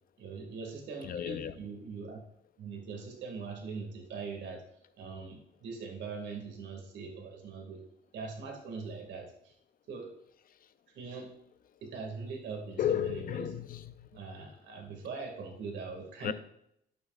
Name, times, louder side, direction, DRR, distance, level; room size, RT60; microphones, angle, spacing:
voice 1, 0.2-2.2 2.6-4.6 5.0-7.8 8.1-9.5 9.9-10.1 10.9-11.3 11.8-13.5 14.1-16.3, right 4 dB, 90° right, 2.3 m, -41 dB
voice 2, 1.0-1.5 12.8-14.1 16.2-16.3, left 10 dB, 55° left, 0.5 m, -33 dB
11.0 x 8.3 x 2.5 m
cardioid pair, 130°, 18 cm